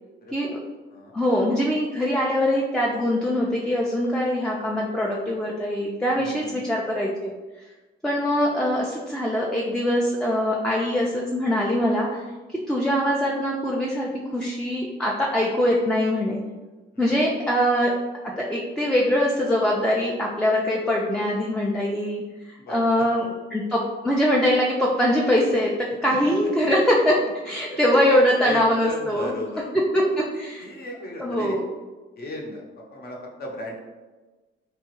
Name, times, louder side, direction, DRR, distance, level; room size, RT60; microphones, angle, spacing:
voice 1, 0.2-0.5 0.9-1.2 6.2-6.7 16.9-17.2 22.6-23.1 26.1-26.3 26.6-26.7 27.7-28.0 28.4-29.7 30.0-30.1 30.6-31.5 32.2-33.8, left 1 dB, 50° left, -1 dB, 0.7 m, -36 dB
voice 2, 1.1-7.3 7.6-7.7 8.0-16.4 17.0-17.9 18.4-23.2 23.5-29.3 29.9-30.7 31.2-31.6, equal, 5° left, -3 dB, 0.3 m, -23 dB
2.9 x 2.3 x 3.0 m, 1.2 s
cardioid pair, 90°, 20 cm